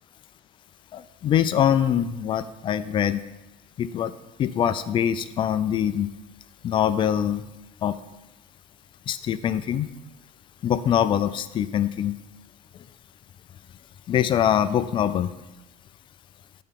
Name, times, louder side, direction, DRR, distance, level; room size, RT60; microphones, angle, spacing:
voice 1, 0.9-3.2 3.8-4.1 4.4-6.1 6.6-7.4 7.8-8.0 9.1-9.9 10.6-12.2 14.1-15.3, left 9 dB, 30° left, 13 dB, 0.3 m, -23 dB
9.8 x 4.2 x 5.2 m, 1.0 s
cardioid pair, 145°, 17 cm